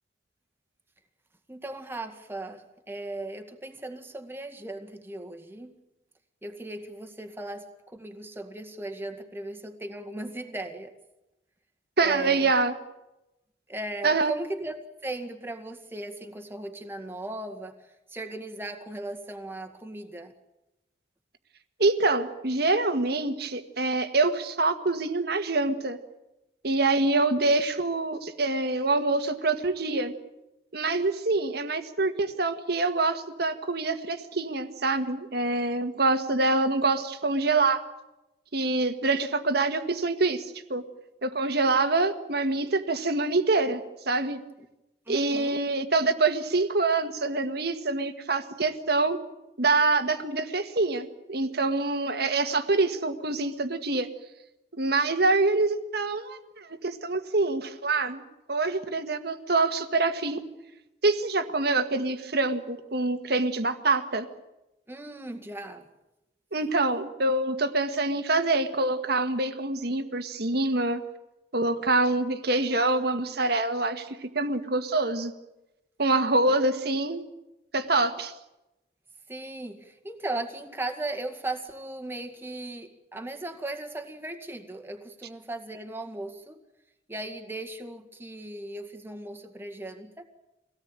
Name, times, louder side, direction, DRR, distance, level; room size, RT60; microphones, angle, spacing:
voice 1, 1.5-5.8 6.4-10.9 12.0-12.5 13.7-20.3 27.4-27.5 44.6-44.7 45.1-45.6 64.9-65.9 79.3-86.6 87.1-90.3, right 2 dB, 15° right, 5 dB, 1.9 m, -37 dB
voice 2, 12.0-12.7 14.0-14.3 21.8-26.0 26.6-30.1 30.7-37.8 38.5-40.8 41.2-43.8 44.1-44.4 45.1-49.2 49.6-54.1 54.7-58.2 58.5-60.4 61.0-64.3 66.5-71.0 71.5-75.3 76.0-77.2 77.7-78.3, right 3 dB, 60° right, 8 dB, 1.7 m, -25 dB
24.5 x 17.5 x 8.9 m, 0.96 s
head